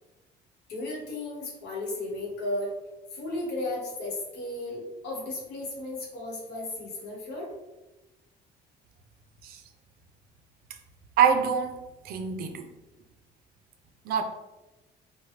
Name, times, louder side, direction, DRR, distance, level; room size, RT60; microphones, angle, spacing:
voice 1, 0.7-2.7 3.1-7.5, left 2 dB, 80° left, -2 dB, 0.9 m, -34 dB
voice 2, 11.2-12.7 14.1-14.2, right 7 dB, 65° right, 5 dB, 0.4 m, -25 dB
3.0 x 2.1 x 3.1 m, 1.1 s
cardioid pair, 110°, 17 cm